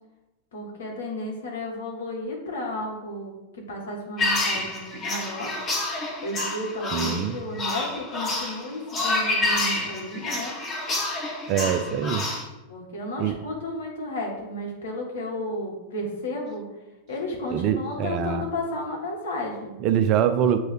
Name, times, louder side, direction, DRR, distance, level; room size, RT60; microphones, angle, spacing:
voice 1, 0.5-5.6 6.2-10.6 12.7-16.7 17.1-19.8, left 1 dB, 60° left, -1 dB, 1.7 m, -33 dB
sound 1, 4.2-12.4, left 2 dB, 30° left, 1.5 m, -28 dB
voice 2, 6.9-7.4 11.5-12.3 13.2-13.3 17.5-18.4 19.8-20.6, right 9 dB, 40° right, 9 dB, 0.5 m, -24 dB
7.7 x 3.1 x 4.6 m, 1.0 s
figure-of-eight pair, 90°, 0 cm